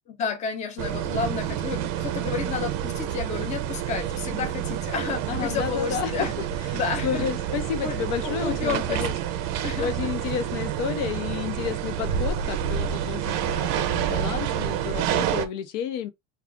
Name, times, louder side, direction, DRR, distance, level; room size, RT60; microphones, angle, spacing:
voice 1, 0.1-6.3 6.7-7.3 7.8-9.0 9.6-9.9, left 6 dB, 20° left, 0.5 m, -31 dB
sound 1, 0.8-15.5, right 10 dB, 45° right, 0.5 m, -28 dB
voice 2, 5.3-6.4 6.7-9.1 9.5-16.1, left 9 dB, 75° left, 0.7 m, -31 dB
2.4 x 2.3 x 3.6 m
cardioid pair, 150°, 37 cm